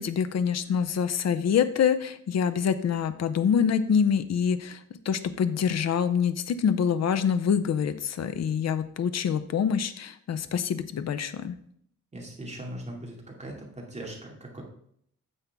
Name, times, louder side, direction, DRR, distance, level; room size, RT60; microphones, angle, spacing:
voice 1, 0.0-4.8 5.1-11.6, left 7 dB, 55° left, 11 dB, 0.7 m, -26 dB
voice 2, 12.1-14.6, right 1 dB, 20° right, -1 dB, 2.3 m, -40 dB
9.8 x 7.0 x 3.5 m, 0.66 s
wide cardioid pair, 165°, 32 cm